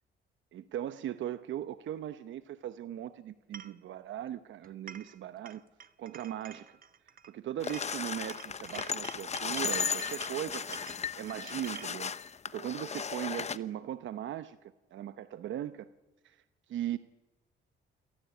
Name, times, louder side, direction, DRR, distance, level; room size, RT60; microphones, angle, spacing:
voice 1, 0.5-5.6 6.0-6.8 7.2-10.8 11.2-12.1 12.5-15.9 16.2-16.4 16.7-17.0, right 11 dB, 75° right, 12 dB, 0.9 m, -38 dB
sound 1, 3.5-3.8 4.6-5.2 5.5-7.3 7.6-11.9, right 7 dB, 45° right, 1.1 m, -49 dB
sound 2, 7.6-13.6, left 6 dB, 35° left, 0.9 m, -36 dB
28.0 x 17.0 x 8.4 m, 1.1 s
cardioid pair, 90°, 20 cm